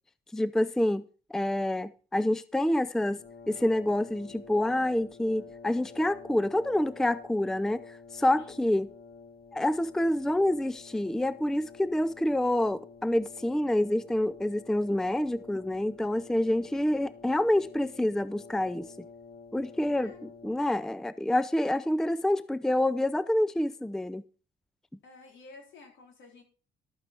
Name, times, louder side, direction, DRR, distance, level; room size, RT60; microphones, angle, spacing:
voice 1, 0.3-1.0 1.3-3.2 3.5-8.9 9.5-18.9 19.5-20.1 20.4-24.2, left 1 dB, ahead, 0.4 m, -27 dB
Brass instrument, 3.0-20.8, left 5 dB, 50° left, 1.9 m, -49 dB
voice 2, 8.4-8.7 16.4-16.9 20.0-20.3 25.0-26.4, left 4 dB, 70° left, 4.0 m, -52 dB
12.5 x 8.9 x 4.4 m
cardioid pair, 90°, 20 cm